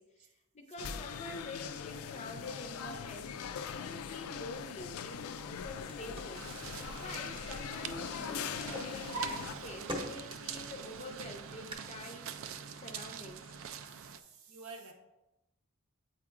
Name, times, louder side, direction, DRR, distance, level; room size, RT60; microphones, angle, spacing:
voice 1, 0.0-3.4 3.7-6.5 6.9-12.3 12.8-13.5, left 2 dB, 30° left, 3 dB, 0.5 m, -47 dB
sound 1, 0.8-9.5, left 7 dB, 85° left, 0.4 m, -41 dB
Drawer open or close, 5.5-8.0 8.3-10.6 11.1-11.7, right 1 dB, 25° right, 0.8 m, -43 dB
sound 2, 6.3-14.2, right 7 dB, 65° right, 0.3 m, -45 dB
voice 2, 13.7-14.9, right 4 dB, 85° right, 4 dB, 0.9 m, -50 dB
8.2 x 4.7 x 2.5 m, 0.96 s
head